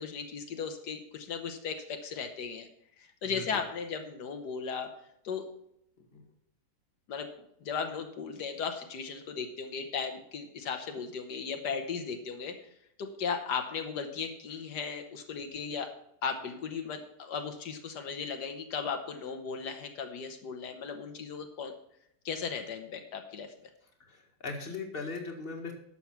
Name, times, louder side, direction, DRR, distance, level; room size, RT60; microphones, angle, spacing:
voice 1, 0.0-2.7 3.0-4.9 5.2-5.5 7.1-7.3 7.6-12.5 13.0-15.9 16.2-21.7 22.2-23.5, left 6 dB, 85° left, 5 dB, 1.7 m, -36 dB
voice 2, 24.1-25.7, left 4 dB, 35° left, 2 dB, 2.0 m, -39 dB
11.5 x 7.1 x 5.9 m, 0.74 s
omnidirectional pair, 1.8 m